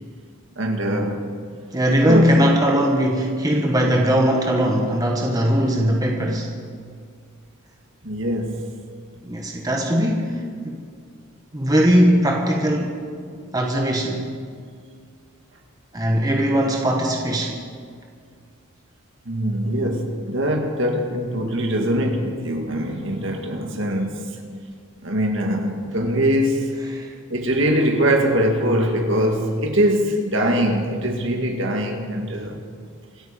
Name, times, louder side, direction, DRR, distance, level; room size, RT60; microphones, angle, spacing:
voice 1, 0.6-1.3 2.1-2.4 8.0-8.7 19.3-24.4 25.0-26.7 27.3-32.6, equal, 60° right, 3 dB, 2.0 m, -22 dB
voice 2, 1.7-6.5 9.2-10.8 11.5-13.1 13.5-14.3 15.9-17.6 26.9-27.1, equal, 15° right, 1 dB, 1.3 m, -20 dB
26.5 x 9.2 x 5.3 m, 2.1 s
head